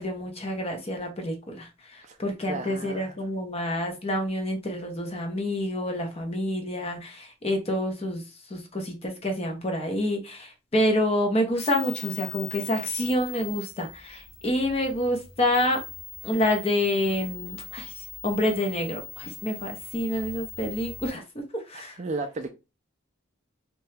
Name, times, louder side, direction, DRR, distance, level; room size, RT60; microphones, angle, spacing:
voice 1, 0.0-8.2 8.5-15.8 16.2-21.2 21.5-22.0, left 1 dB, 30° left, 3 dB, 0.6 m, -28 dB
voice 2, 2.5-3.1 22.0-22.5, right 3 dB, 35° right, 6 dB, 0.3 m, -33 dB
sound 1, 11.5-21.1, left 6 dB, 85° left, 1.0 m, -41 dB
2.8 x 2.2 x 3.1 m, 0.28 s
head